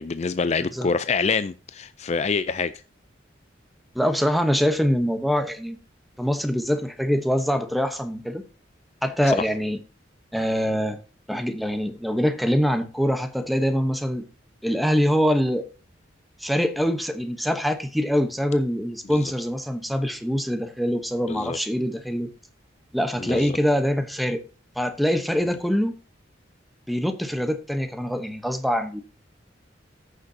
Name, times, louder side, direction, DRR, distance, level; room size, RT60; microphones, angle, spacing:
voice 1, 0.0-2.7 9.3-9.4 19.1-19.3 21.3-21.6 23.2-23.6, left 5 dB, 35° left, 0.4 m, -26 dB
voice 2, 3.9-5.8 6.2-8.4 9.0-9.8 10.3-11.0 11.3-14.2 14.6-15.7 16.4-22.3 22.9-24.4 24.8-25.9 26.9-29.0, equal, ahead, 0.9 m, -24 dB
15.0 x 6.6 x 2.7 m
head